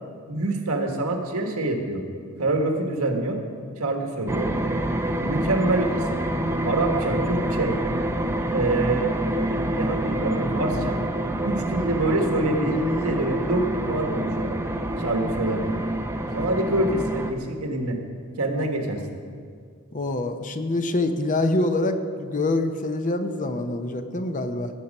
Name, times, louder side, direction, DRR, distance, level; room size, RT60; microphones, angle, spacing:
voice 1, 0.3-2.0 2.4-3.4 3.8-4.6 5.2-6.2 6.6-7.7 8.5-9.1 9.6-11.0 11.4-14.6 15.0-15.8 16.3-18.0 18.4-19.0, right 2 dB, 75° right, 3 dB, 1.6 m, -26 dB
sound 1, 4.3-17.3, right 1 dB, 10° right, 0.6 m, -27 dB
voice 2, 19.9-24.7, left 2 dB, 35° left, 8 dB, 0.7 m, -25 dB
17.5 x 7.3 x 5.4 m, 2.1 s
head